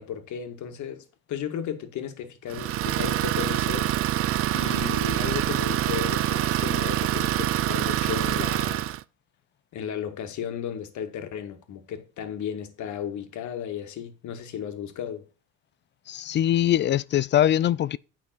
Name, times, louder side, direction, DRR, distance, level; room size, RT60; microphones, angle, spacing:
voice 1, 0.0-4.3 4.5-8.9 9.7-15.3, left 8 dB, 55° left, 2.0 m, -35 dB
Idling, 2.5-9.0, right 13 dB, 40° right, 0.5 m, -25 dB
voice 2, 16.1-18.0, left 11 dB, 35° left, 0.4 m, -22 dB
9.3 x 5.8 x 6.1 m
cardioid pair, 110°, 35 cm